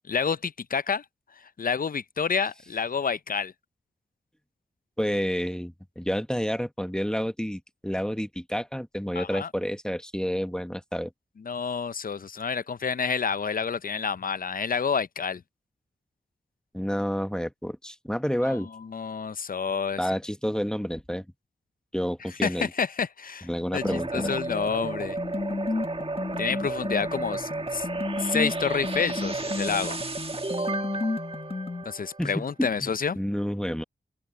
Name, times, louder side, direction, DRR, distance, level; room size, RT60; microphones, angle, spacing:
voice 1, 0.1-1.0 1.6-3.5 9.2-9.5 11.4-15.4 18.4-20.0 22.4-25.2 26.4-30.0 31.8-33.2, left 6 dB, 50° left, 0.7 m, -29 dB
voice 2, 5.0-11.1 16.7-18.7 20.0-21.2 21.9-22.7 23.4-24.3 32.2-32.9 33.2-33.8, equal, 5° left, 1.4 m, -29 dB
sound 1, 23.8-31.8, left 3 dB, 30° left, 1.5 m, -33 dB
sound 2, 23.8-32.5, right 3 dB, 30° right, 1.9 m, -33 dB
open air
cardioid pair, 45°, 19 cm